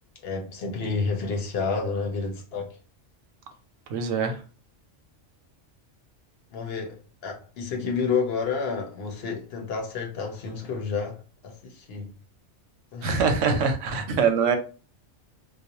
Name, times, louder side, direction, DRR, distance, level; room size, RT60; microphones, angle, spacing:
voice 1, 0.2-2.8 6.5-12.1 12.9-13.3, left 5 dB, 60° left, 0.8 m, -30 dB
voice 2, 3.9-4.4 13.0-14.6, right 5 dB, 90° right, 1.0 m, -23 dB
2.4 x 2.1 x 2.8 m
omnidirectional pair, 1.2 m